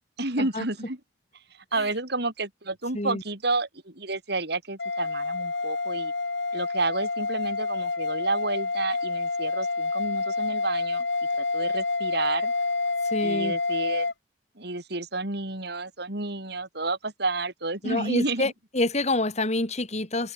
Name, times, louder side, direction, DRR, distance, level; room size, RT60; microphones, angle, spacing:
voice 1, 0.2-1.0 1.5-6.1 6.5-11.1 11.4-12.5 13.2-14.1 14.6-18.5, right 2 dB, 65° right, 5.3 m, -30 dB
sound 1, 4.8-14.1, left 3 dB, 70° left, 2.5 m, -28 dB
voice 2, 13.1-13.6 17.8-20.3, left 2 dB, 40° left, 4.0 m, -27 dB
head